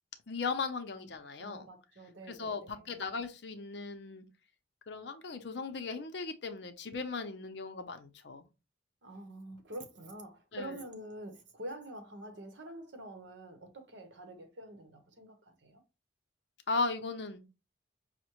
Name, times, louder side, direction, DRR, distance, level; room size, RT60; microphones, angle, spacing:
voice 1, 0.3-1.7 2.3-4.3 4.9-8.5 10.5-10.8 16.7-17.4, left 4 dB, 65° left, 0.6 m, -37 dB
voice 2, 1.4-3.0 9.0-15.8, right 1 dB, 70° right, 0.9 m, -46 dB
5.7 x 2.1 x 3.0 m
head